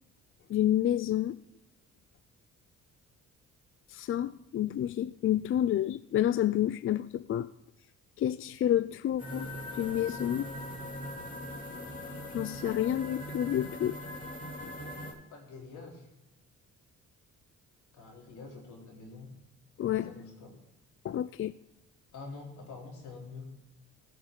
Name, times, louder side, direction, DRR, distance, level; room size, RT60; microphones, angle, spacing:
voice 1, 0.5-1.4 3.9-7.5 8.2-9.5 9.8-10.5 12.3-14.0 19.8-20.1 21.0-21.5, left 11 dB, 45° left, 15 dB, 0.4 m, -29 dB
sound 1, 9.2-15.1, equal, 25° left, 3.0 m, -41 dB
voice 2, 15.3-16.1 17.9-19.3 19.9-20.5 22.1-23.4, left 3 dB, 80° left, -1 dB, 3.8 m, -46 dB
15.5 x 6.7 x 3.8 m, 0.95 s
cardioid pair, 90°, 30 cm